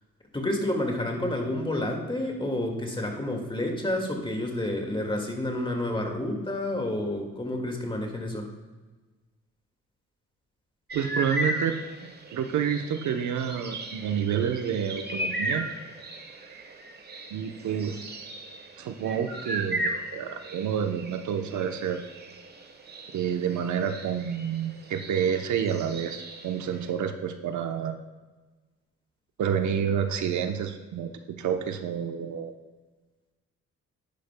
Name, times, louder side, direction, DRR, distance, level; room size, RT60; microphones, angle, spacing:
voice 1, 0.3-8.5, left 1 dB, 15° left, 2 dB, 1.9 m, -29 dB
sound 1, 10.9-26.9, right 1 dB, 35° right, 1.3 m, -37 dB
voice 2, 10.9-11.8 12.3-15.7 17.3-18.0 18.8-22.0 23.1-28.0 29.4-32.5, right 8 dB, 70° right, 6 dB, 0.9 m, -29 dB
10.5 x 10.5 x 2.2 m, 1.3 s
cardioid pair, 90°, 30 cm